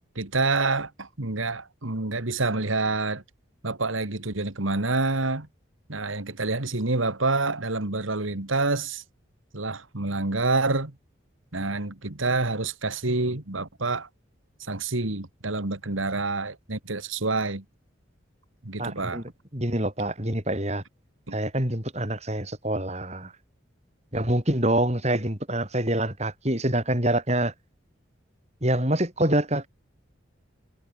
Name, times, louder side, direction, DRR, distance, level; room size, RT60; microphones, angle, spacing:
voice 1, 0.2-3.2 3.6-5.5 5.9-9.0 9.5-10.9 11.5-14.1 14.6-17.6 18.6-19.2 21.3-21.4, right 3 dB, 90° right, 2.4 m, -27 dB
voice 2, 18.8-19.2 19.5-20.8 21.3-23.3 24.1-27.5 28.6-29.7, right 1 dB, 35° right, 5.5 m, -26 dB
head